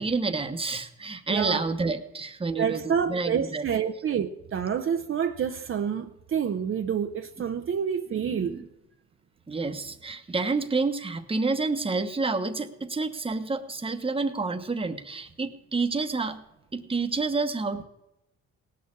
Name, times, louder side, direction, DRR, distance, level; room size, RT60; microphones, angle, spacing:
voice 1, 0.0-3.6 8.1-8.7 9.5-16.4 16.7-17.8, right 3 dB, 20° right, 1.1 m, -29 dB
voice 2, 1.3-1.6 2.6-8.6, right 7 dB, 45° right, 0.7 m, -28 dB
18.0 x 6.7 x 7.2 m
cardioid pair, 90°, 30 cm